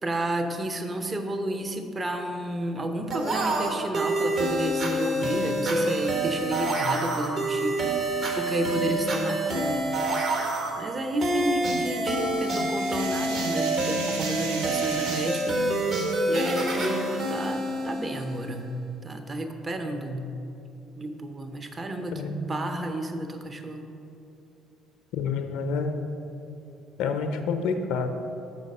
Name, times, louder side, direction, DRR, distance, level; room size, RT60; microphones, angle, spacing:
voice 1, 0.0-9.9 10.8-15.6 16.3-18.7 19.0-20.3 21.0-23.9, right 1 dB, 30° right, 6 dB, 0.7 m, -31 dB
sound 1, 3.1-18.6, right 1 dB, 50° right, 1.3 m, -27 dB
sound 2, 11.8-15.6, right 3 dB, 85° right, 0.7 m, -38 dB
voice 2, 25.1-26.0 27.0-28.1, left 5 dB, 70° left, 7 dB, 0.5 m, -28 dB
6.4 x 5.2 x 5.3 m, 2.8 s
hypercardioid pair, 55°, 0 cm